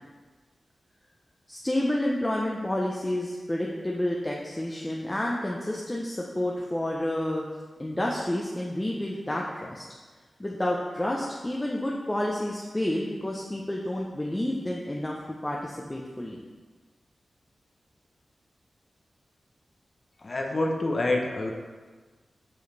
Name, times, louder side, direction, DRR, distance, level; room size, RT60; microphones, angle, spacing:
voice 1, 1.5-7.4 7.8-9.8 10.4-16.4, left 1 dB, 15° left, -3 dB, 0.8 m, -30 dB
voice 2, 20.2-21.5, left 2 dB, 45° left, 1 dB, 0.8 m, -27 dB
7.7 x 5.0 x 4.1 m, 1.4 s
cardioid pair, 70°, 0 cm